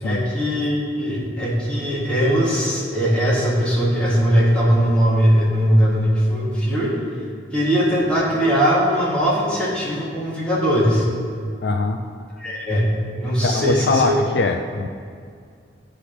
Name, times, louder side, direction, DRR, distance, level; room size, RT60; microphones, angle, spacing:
voice 1, 0.0-6.9 7.5-11.0 12.4-12.9 13.2-14.2, equal, 5° left, -7 dB, 1.5 m, -20 dB
voice 2, 11.6-12.0 13.4-14.9, left 3 dB, 60° left, 5 dB, 0.3 m, -22 dB
9.8 x 3.3 x 5.8 m, 2.2 s
head